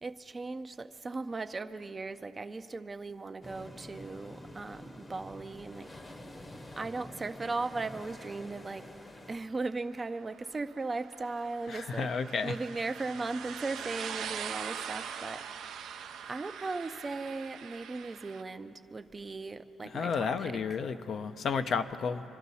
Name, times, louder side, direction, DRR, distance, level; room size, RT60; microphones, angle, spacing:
voice 1, 0.0-5.9 6.8-8.9 9.3-12.1 12.4-15.5 16.3-20.6, right 3 dB, 30° right, 10 dB, 0.5 m, -37 dB
sound 1, 3.4-9.4, left 1 dB, 25° left, 0.9 m, -48 dB
sound 2, 10.3-18.4, right 8 dB, 80° right, 0.6 m, -42 dB
voice 2, 11.7-12.6 19.9-22.2, left 5 dB, 60° left, 9 dB, 0.6 m, -32 dB
24.5 x 12.0 x 4.2 m, 2.9 s
cardioid pair, 90°, 0 cm